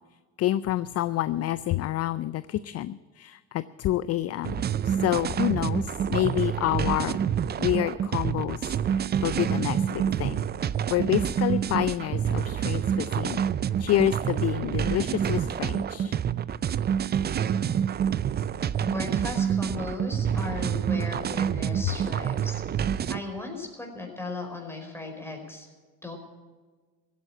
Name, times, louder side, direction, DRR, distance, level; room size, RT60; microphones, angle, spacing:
voice 1, 0.4-7.2 7.6-10.4 10.9-13.4 13.8-16.1, left 13 dB, 40° left, 16 dB, 0.5 m, -28 dB
sound 1, 4.4-23.2, right 8 dB, 25° right, 0.5 m, -27 dB
voice 2, 18.8-22.6 23.1-25.7 26.0-26.2, left 3 dB, 5° left, 2 dB, 4.8 m, -36 dB
16.0 x 9.3 x 8.7 m, 1.4 s
supercardioid pair, 85°, 39 cm